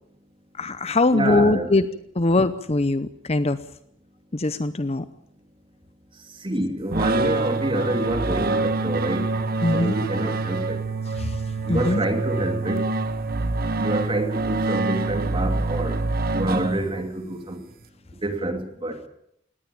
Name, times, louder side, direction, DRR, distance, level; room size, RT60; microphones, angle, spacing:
voice 1, 0.6-1.9 2.2-3.6 4.3-5.0 9.6-9.9 11.2-11.3 11.7-12.0, left 2 dB, 30° left, 13 dB, 0.8 m, -21 dB
voice 2, 1.1-1.8 6.1-9.3 9.7-10.9 11.6-12.9 13.7-17.7 18.2-19.1, right 1 dB, 25° right, 6 dB, 2.8 m, -27 dB
sound 1, 6.9-17.2, right 3 dB, 45° right, 1.4 m, -26 dB
19.0 x 18.5 x 8.6 m, 0.71 s
head